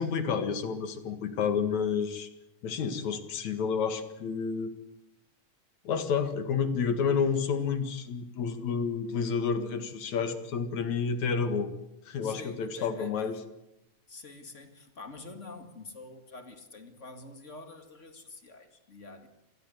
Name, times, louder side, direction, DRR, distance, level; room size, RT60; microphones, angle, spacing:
voice 1, 0.0-2.3 2.6-4.7 5.8-11.7 12.1-13.3, left 6 dB, 65° left, 3.0 m, -30 dB
voice 2, 12.2-13.3 14.1-19.3, left 3 dB, 25° left, 2.0 m, -47 dB
27.5 x 19.5 x 8.1 m
omnidirectional pair, 3.6 m